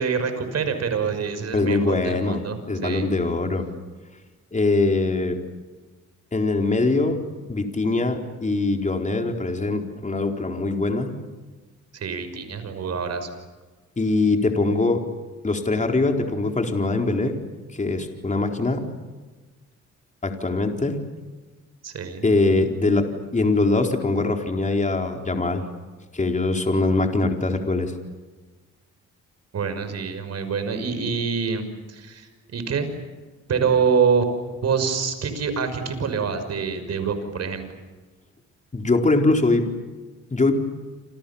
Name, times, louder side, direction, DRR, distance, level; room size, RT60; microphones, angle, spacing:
voice 1, 0.0-3.1 11.9-13.3 21.8-22.3 29.5-32.9 33.5-34.3 34.6-37.6, right 6 dB, 55° right, 9 dB, 6.0 m, -25 dB
voice 2, 1.5-2.4 2.7-3.7 4.5-5.4 6.3-7.2 7.5-11.1 14.0-15.0 15.4-17.4 17.8-18.9 20.2-21.0 22.2-25.6 26.1-27.9 38.7-39.7 40.3-40.5, left 3 dB, 25° left, 3 dB, 4.3 m, -22 dB
29.0 x 28.0 x 7.2 m, 1.3 s
cardioid pair, 90°, 30 cm